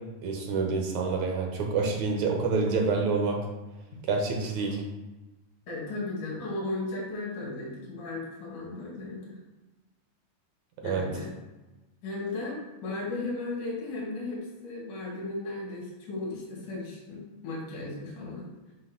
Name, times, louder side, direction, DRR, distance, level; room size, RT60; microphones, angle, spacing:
voice 1, 0.2-3.4 4.1-4.8 10.8-11.0, right 4 dB, 70° right, 0 dB, 2.0 m, -27 dB
voice 2, 5.7-9.4 10.8-11.3 12.0-18.5, left 2 dB, 70° left, -5 dB, 3.9 m, -35 dB
8.4 x 2.9 x 5.6 m, 1.1 s
omnidirectional pair, 3.7 m